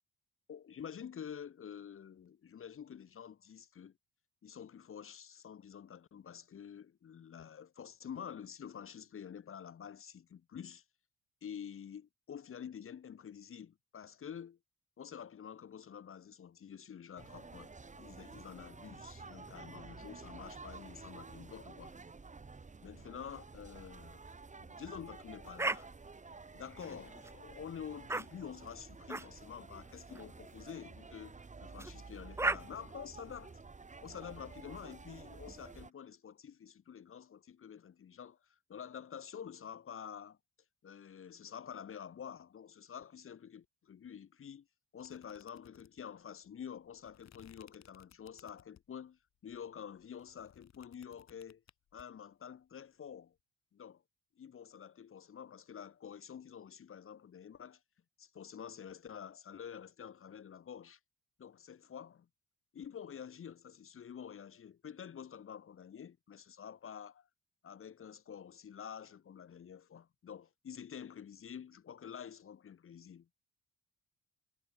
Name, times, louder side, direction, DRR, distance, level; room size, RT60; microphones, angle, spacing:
voice 1, 0.5-4.0 4.4-10.8 11.4-14.6 15.0-22.0 22.8-24.2 24.6-25.9 26.5-31.3 31.6-33.6 34.0-40.4 40.8-44.7 44.9-51.6 51.9-53.4 53.7-54.0 54.4-57.8 58.2-61.0 61.4-62.3 62.7-67.3 67.6-73.4, left 8 dB, 45° left, 1.3 m, -48 dB
sound 1, 17.2-35.9, right 4 dB, 25° right, 2.2 m, -51 dB
sound 2, 25.6-25.8 26.8-27.3 28.1-28.2 29.1-29.3 30.1-30.3 31.8-31.9 32.4-32.6, right 2 dB, 10° right, 0.6 m, -34 dB
sound 3, 45.0-49.0 49.5-52.0, left 10 dB, 60° left, 3.9 m, -63 dB
cardioid pair, 90°, 30 cm